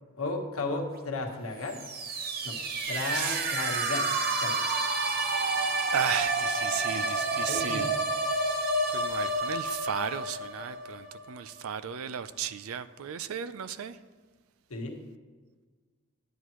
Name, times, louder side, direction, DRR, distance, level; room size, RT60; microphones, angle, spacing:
voice 1, 0.2-1.8 2.4-2.6 2.9-4.1 4.4-4.9 5.4-5.5 7.5-7.9 14.7-15.0, left 2 dB, 85° left, 1 dB, 1.3 m, -34 dB
sound 1, 1.6-11.4, right 2 dB, 45° right, 0.7 m, -30 dB
voice 2, 3.1-3.5 5.9-7.9 8.3-14.0, right 8 dB, 80° right, 13 dB, 0.4 m, -35 dB
11.0 x 8.3 x 3.1 m, 1.5 s
head